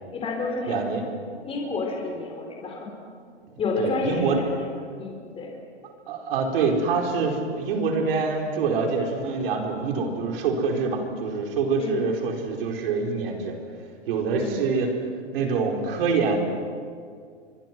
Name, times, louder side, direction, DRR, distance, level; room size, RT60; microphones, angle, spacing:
voice 1, 0.1-1.1 1.4-2.9 3.6-4.7 5.0-5.5 11.8-12.1 14.4-14.7, left 3 dB, 15° left, 1 dB, 4.3 m, -30 dB
voice 2, 0.7-1.0 3.8-4.4 6.1-13.5 14.1-14.9 15.3-16.4, right 4 dB, 55° right, 1 dB, 4.9 m, -25 dB
30.0 x 24.0 x 6.2 m, 2.1 s
hypercardioid pair, 145°, 35 cm